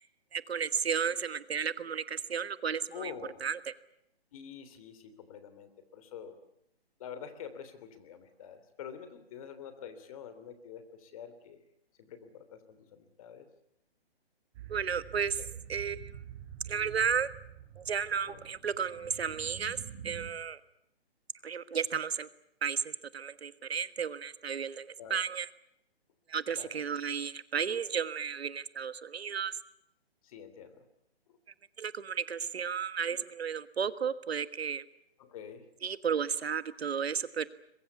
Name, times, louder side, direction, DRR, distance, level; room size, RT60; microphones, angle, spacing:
voice 1, 0.3-3.1 3.4-3.6 14.7-15.4 15.7-16.1 16.7-17.3 17.8-19.8 20.0-20.6 21.4-22.3 22.6-25.5 26.3-29.5 31.8-34.8 35.8-37.5, right 7 dB, 75° right, 14 dB, 1.5 m, -33 dB
voice 2, 2.9-3.5 4.3-6.4 7.0-11.6 12.0-13.5 15.4-15.5 18.2-18.5 25.0-25.2 26.5-26.7 30.2-30.8 35.2-35.6, left 7 dB, 35° left, 11 dB, 3.2 m, -46 dB
sound 1, 14.5-20.3, right 9 dB, 30° right, 5.7 m, -47 dB
22.5 x 22.0 x 8.3 m, 0.77 s
hypercardioid pair, 160°, 31 cm